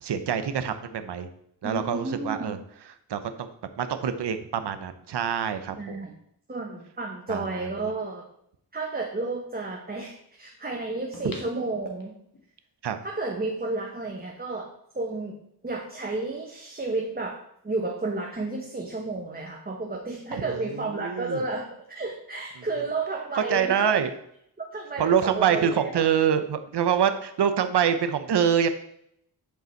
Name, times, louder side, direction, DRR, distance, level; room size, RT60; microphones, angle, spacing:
voice 1, 0.0-1.3 1.6-2.6 3.1-3.5 3.8-6.0 7.3-7.5 12.8-13.0 20.3-20.6 21.0-21.4 23.5-24.1 25.0-28.7, right 8 dB, 85° right, 9 dB, 0.9 m, -25 dB
voice 2, 1.6-2.6 5.8-6.1 6.5-8.2 8.7-12.1 13.0-15.4 15.6-24.0 24.6-26.0, right 3 dB, 25° right, 0 dB, 1.2 m, -32 dB
sound 1, 11.1-12.5 13.0-13.1, left 3 dB, 55° left, 1.7 m, -45 dB
10.5 x 5.6 x 4.5 m, 0.71 s
wide cardioid pair, 105°, 40 cm